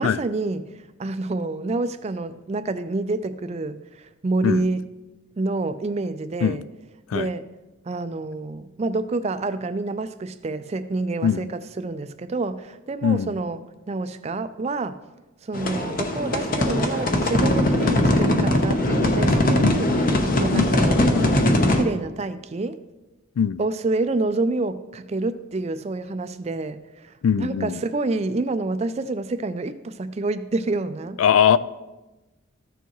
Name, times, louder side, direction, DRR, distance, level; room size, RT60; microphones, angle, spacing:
voice 1, 0.0-4.9 5.4-6.6 7.1-7.5 7.8-15.0 15.4-19.9 20.4-21.2 21.7-22.8 23.6-31.2, right 2 dB, 30° right, 12 dB, 0.3 m, -28 dB
voice 2, 13.0-13.3 19.6-19.8 20.5-20.7 23.4-23.6 27.2-27.8 31.2-31.6, left 7 dB, 80° left, 17 dB, 0.3 m, -21 dB
sound 1, 15.5-21.8, left 1 dB, 40° left, 0.8 m, -20 dB
14.0 x 7.0 x 3.0 m, 1.1 s
head